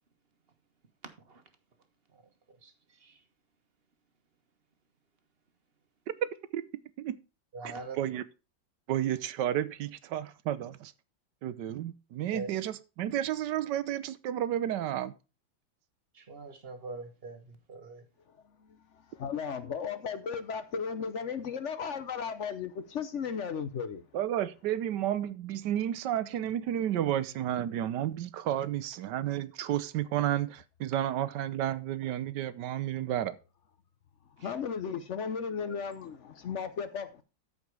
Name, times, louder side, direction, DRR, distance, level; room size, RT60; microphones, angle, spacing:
voice 1, 2.5-3.2 7.5-8.0 12.3-12.5 16.1-18.1, right 3 dB, 35° right, 1.3 m, -43 dB
voice 2, 6.2-6.6 7.0-7.2 8.0-8.2 8.9-10.9 11.4-15.1 24.1-33.3, right 11 dB, 70° right, 1.2 m, -31 dB
voice 3, 19.2-24.0 34.2-37.2, left 6 dB, 60° left, 0.7 m, -35 dB
13.5 x 5.1 x 4.7 m
omnidirectional pair, 2.2 m